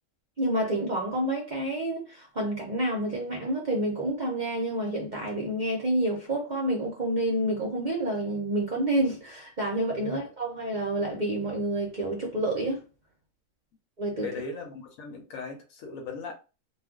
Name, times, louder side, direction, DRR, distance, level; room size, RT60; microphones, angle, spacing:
voice 1, 0.4-12.8 14.0-14.3, right 1 dB, 45° right, 0.6 m, -29 dB
voice 2, 14.2-16.3, left 4 dB, 70° left, 1.1 m, -38 dB
2.4 x 2.4 x 3.5 m
omnidirectional pair, 1.5 m